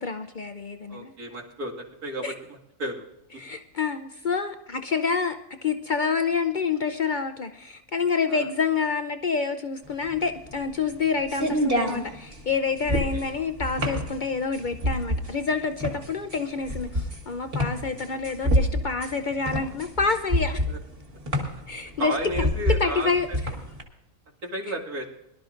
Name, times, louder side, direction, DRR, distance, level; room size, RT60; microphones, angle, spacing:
voice 1, 0.0-1.1 2.2-2.3 3.4-20.6 21.7-22.1 22.8-23.3, left 5 dB, 75° left, 8 dB, 0.4 m, -28 dB
voice 2, 0.9-3.1 8.3-8.5 13.1-13.2 20.7-20.8 22.0-23.1 24.4-25.1, right 1 dB, 75° right, -1 dB, 2.6 m, -33 dB
sound 1, 9.9-23.8, equal, 40° right, 1.9 m, -28 dB
22.5 x 12.5 x 2.5 m, 0.91 s
omnidirectional pair, 1.6 m